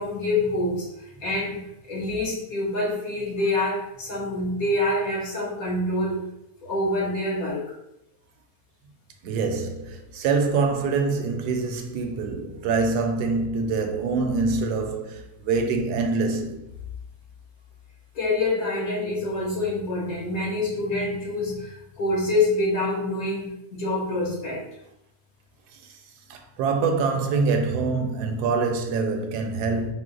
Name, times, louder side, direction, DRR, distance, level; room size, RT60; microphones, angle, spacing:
voice 1, 0.0-6.3 6.6-7.6 18.2-24.7, left 2 dB, 65° left, 1.6 m, -26 dB
voice 2, 9.2-16.7 26.3-29.9, right 4 dB, 80° right, 1.1 m, -25 dB
4.6 x 2.0 x 3.7 m
omnidirectional pair, 1.7 m